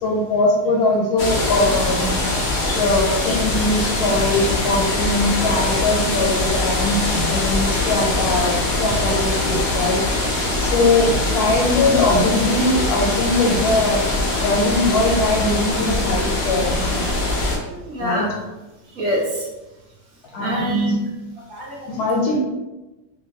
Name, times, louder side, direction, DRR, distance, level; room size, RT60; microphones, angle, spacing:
voice 1, 0.0-2.2 2.7-10.0 10.6-14.0 14.4-17.1 18.0-18.3 20.3-21.0 21.9-22.4, left 2 dB, 75° left, -2 dB, 1.2 m, -21 dB
sound 1, 1.2-17.6, left 2 dB, 60° left, 0.7 m, -22 dB
voice 2, 17.7-18.3 19.0-19.5 20.4-21.0 21.5-22.0, equal, 65° right, -3 dB, 0.9 m, -26 dB
2.8 x 2.6 x 2.8 m, 1.1 s
omnidirectional pair, 1.7 m